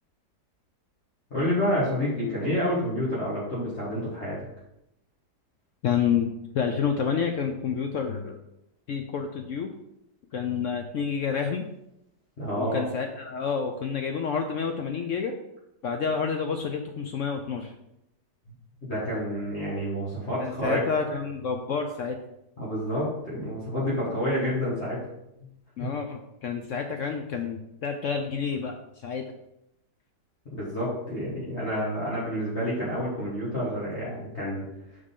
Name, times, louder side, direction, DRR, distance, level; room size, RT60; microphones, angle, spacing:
voice 1, 1.3-4.4 12.4-12.8 18.9-20.8 22.6-25.0 25.8-25.9 30.5-34.6, equal, 40° left, -8 dB, 2.2 m, -29 dB
voice 2, 5.8-6.3 6.5-8.4 8.9-9.7 10.3-11.7 12.6-15.4 15.8-17.7 20.4-22.2 25.8-28.7 29.0-29.3, left 6 dB, 70° left, 5 dB, 0.7 m, -29 dB
6.5 x 5.6 x 3.7 m, 0.83 s
omnidirectional pair, 1.8 m